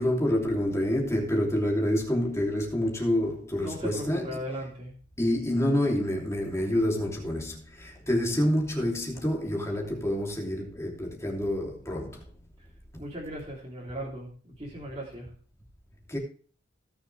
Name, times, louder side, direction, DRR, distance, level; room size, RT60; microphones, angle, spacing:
voice 1, 0.0-4.4 5.2-12.2 12.9-13.0 16.1-16.2, left 1 dB, 15° left, 2.9 m, -27 dB
voice 2, 3.6-4.9 13.0-15.3, equal, 25° right, 3.1 m, -37 dB
17.5 x 7.0 x 3.3 m
head